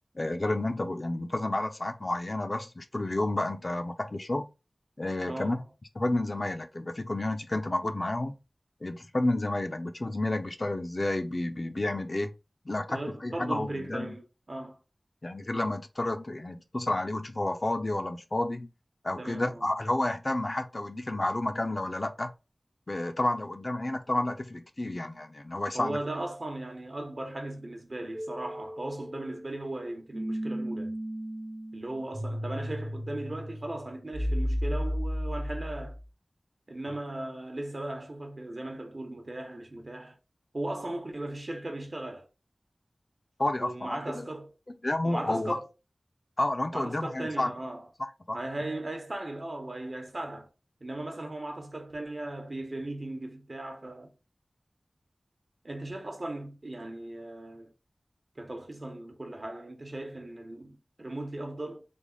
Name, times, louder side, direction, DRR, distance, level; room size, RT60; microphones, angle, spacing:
voice 1, 0.1-4.5 5.0-5.6 6.0-8.4 8.8-12.3 12.7-14.2 15.2-18.7 19.0-22.3 22.9-26.0 43.4-44.3 44.8-45.6 46.4-47.5 48.0-48.4, left 1 dB, 45° left, 0.5 m, -30 dB
voice 2, 5.3-5.6 12.9-14.8 19.2-19.7 25.7-30.9 31.7-36.0 36.7-40.2 40.5-42.3 43.6-44.5 45.0-45.7 46.7-47.9 48.3-50.5 50.8-54.1 55.6-57.7 58.4-61.8, right 1 dB, 50° right, 0.9 m, -37 dB
sound 1, 28.1-36.0, equal, 20° right, 0.4 m, -34 dB
3.4 x 2.0 x 3.8 m
wide cardioid pair, 55°, 0 cm